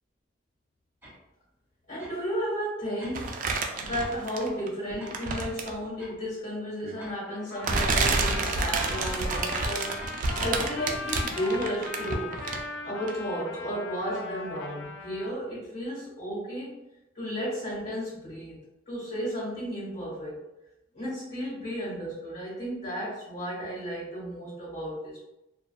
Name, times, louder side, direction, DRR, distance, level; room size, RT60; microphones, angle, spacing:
sound 1, 1.0-1.2 2.0-2.3 3.0-3.2 4.0-4.2 5.0-5.2 6.0-6.2 7.0-7.2 8.0-8.2 9.0-9.2 10.0-10.2, equal, 10° right, 0.9 m, -47 dB
voice 1, 1.9-3.4 3.8-10.0 10.4-12.4 12.8-16.7 17.1-20.4 20.9-25.2, equal, 50° left, -10 dB, 1.5 m, -33 dB
sound 2, 3.1-4.7 5.1-5.8 6.8-6.9 7.6-12.8 13.1-13.2, right 3 dB, 45° right, 0.3 m, -29 dB
Trumpet, 6.9-15.4, left 4 dB, 80° left, 0.4 m, -40 dB
2.5 x 2.3 x 2.3 m, 0.93 s
head